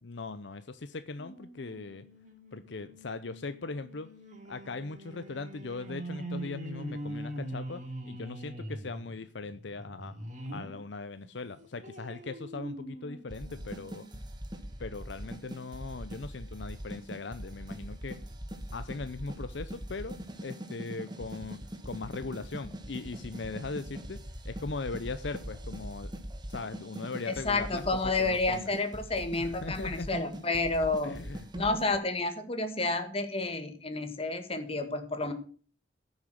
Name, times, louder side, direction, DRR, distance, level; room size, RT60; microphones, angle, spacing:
voice 1, 0.0-2.0 2.5-4.1 4.5-10.2 10.5-14.1 14.8-18.2 18.7-26.1 26.5-28.7 29.4-30.1 31.0-31.5, left 3 dB, 70° left, 12 dB, 0.7 m, -39 dB
sound 1, 1.2-10.8 11.2-14.3 14.8-14.9 15.2-15.3, right 1 dB, 45° right, 2.7 m, -43 dB
sound 2, 13.3-32.0, equal, 25° right, 1.5 m, -42 dB
voice 2, 27.3-31.2 31.5-35.3, left 3 dB, 30° left, 8 dB, 2.0 m, -30 dB
14.5 x 7.3 x 6.4 m, 0.42 s
head